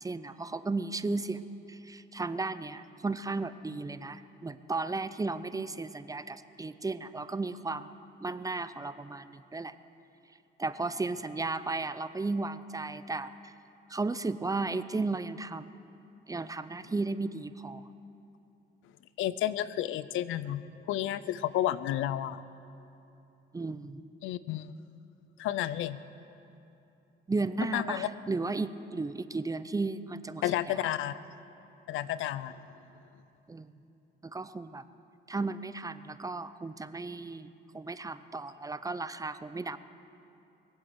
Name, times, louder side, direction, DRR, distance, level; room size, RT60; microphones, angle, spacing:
voice 1, 0.0-1.4 1.7-7.9 8.2-9.7 10.6-13.5 13.9-15.7 16.3-17.8 23.5-24.0 27.3-30.9 33.5-33.7 34.2-34.8 35.3-39.8, right 3 dB, 15° right, 13 dB, 0.5 m, -34 dB
voice 2, 19.2-22.4 24.2-24.8 25.4-26.0 27.7-28.1 30.4-31.2 31.9-32.6, left 12 dB, 85° left, 16 dB, 0.5 m, -31 dB
21.5 x 8.1 x 8.0 m, 2.8 s
cardioid pair, 90°, 20 cm